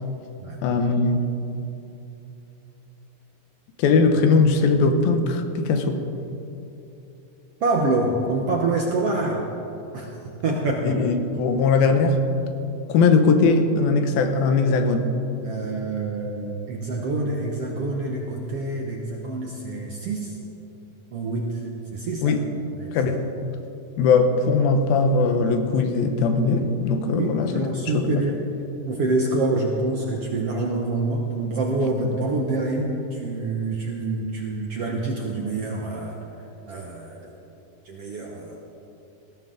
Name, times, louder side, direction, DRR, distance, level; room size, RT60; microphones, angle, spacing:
voice 1, 0.6-1.3 3.8-6.0 10.8-12.2 12.9-15.1 22.2-22.5 22.9-23.2 24.0-27.5 27.9-28.2 32.0-32.1, left 4 dB, 85° left, 7 dB, 2.9 m, -20 dB
voice 2, 7.6-9.5 9.9-10.1 10.4-11.0 15.4-20.4 21.1-21.6 21.9-22.4 22.8-23.1 27.2-28.3 28.8-36.2 36.7-37.3 37.8-38.6, right 2 dB, 65° right, 0 dB, 1.5 m, -26 dB
20.0 x 15.5 x 3.8 m, 2.9 s
omnidirectional pair, 4.1 m